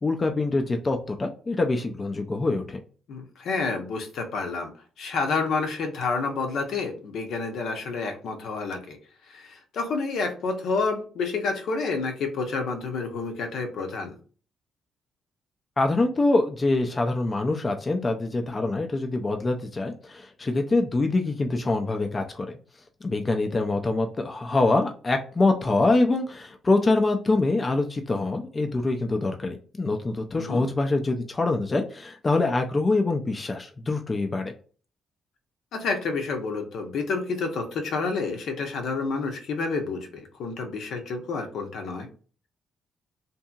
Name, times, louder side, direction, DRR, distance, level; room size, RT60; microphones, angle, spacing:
voice 1, 0.0-2.8 15.8-22.5 23.0-34.5, left 2 dB, 30° left, 4 dB, 0.4 m, -25 dB
voice 2, 3.1-4.7 5.0-9.0 9.3-14.2 30.4-30.7 35.7-42.1, left 4 dB, 70° left, 4 dB, 0.7 m, -29 dB
2.7 x 2.6 x 2.3 m, 0.39 s
cardioid pair, 90°, 0 cm